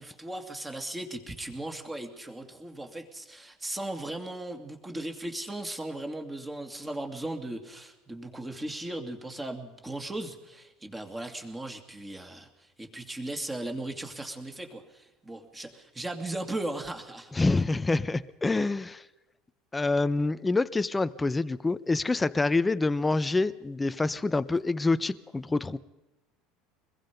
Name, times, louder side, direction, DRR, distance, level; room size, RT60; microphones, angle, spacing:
voice 1, 0.0-17.4, right 1 dB, 10° right, 2.6 m, -37 dB
voice 2, 17.3-19.0 19.7-25.8, left 3 dB, 10° left, 0.7 m, -26 dB
25.5 x 21.5 x 5.3 m
cardioid pair, 145°, 0 cm